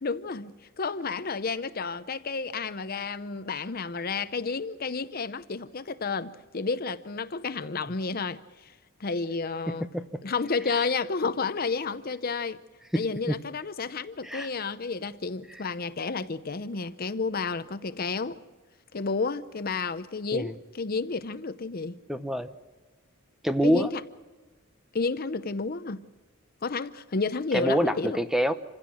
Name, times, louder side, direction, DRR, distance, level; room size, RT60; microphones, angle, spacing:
voice 1, 0.0-8.7 9.0-9.9 10.2-12.6 12.9-18.4 18.9-22.0 23.6-24.0 24.9-26.0 26.6-28.2, left 4 dB, 45° left, 0.7 m, -31 dB
voice 2, 9.7-10.2 12.9-13.4 14.2-14.5 20.3-20.5 22.1-22.5 23.4-23.9 27.5-28.5, equal, ahead, 0.8 m, -26 dB
27.5 x 16.0 x 6.3 m
head